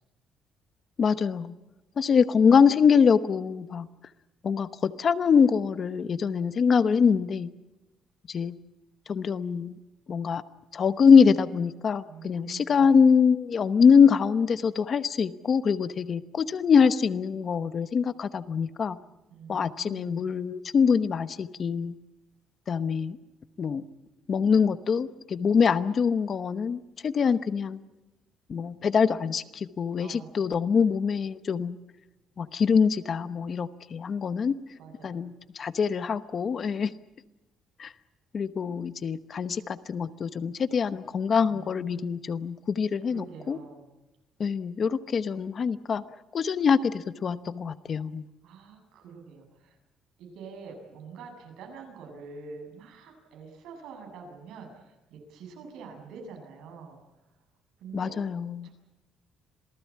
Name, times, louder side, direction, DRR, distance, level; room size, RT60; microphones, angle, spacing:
voice 1, 1.0-1.5 2.0-3.9 4.4-7.5 8.3-8.5 9.1-9.8 10.1-10.4 10.7-19.0 19.5-21.9 22.7-23.2 23.6-23.8 24.3-27.8 28.5-31.8 32.4-34.6 35.0-36.9 37.8-37.9 38.3-43.6 44.4-46.0 46.3-48.2 57.9-58.7, left 6 dB, 35° left, 12 dB, 0.9 m, -24 dB
voice 2, 12.1-12.9 19.3-20.3 30.0-30.4 34.8-35.3 41.5-42.1 43.1-43.9 48.4-49.8 50.2-57.0 57.8-58.2 58.6-58.7, right 5 dB, 85° right, 4 dB, 7.3 m, -46 dB
27.0 x 18.5 x 8.5 m, 1.0 s
cardioid pair, 150°, 0 cm